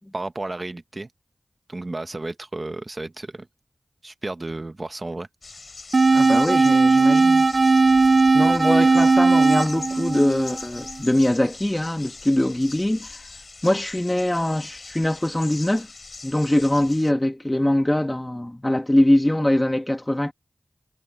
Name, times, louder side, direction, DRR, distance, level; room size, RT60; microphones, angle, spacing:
voice 1, 0.1-1.1 1.7-3.5 4.0-5.3, right 2 dB, 45° right, 1.2 m, -32 dB
sound 1, 5.4-17.1, left 3 dB, 70° left, 4.8 m, -41 dB
sound 2, 5.9-11.0, right 3 dB, 60° right, 0.4 m, -17 dB
voice 2, 6.1-7.5 8.3-13.1 13.6-15.9 16.2-20.3, left 1 dB, 20° left, 1.9 m, -22 dB
cardioid pair, 45°, 0 cm